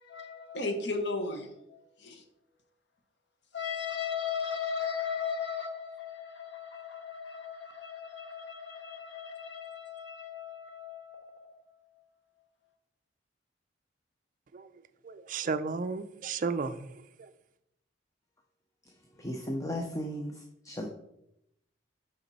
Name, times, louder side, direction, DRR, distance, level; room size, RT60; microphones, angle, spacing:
voice 1, 0.0-2.2 3.5-11.9, left 5 dB, 60° left, 1.0 m, -37 dB
voice 2, 15.0-17.3, right 4 dB, 45° right, 0.4 m, -34 dB
voice 3, 19.2-20.9, equal, 15° left, 0.6 m, -35 dB
7.0 x 5.1 x 4.1 m
head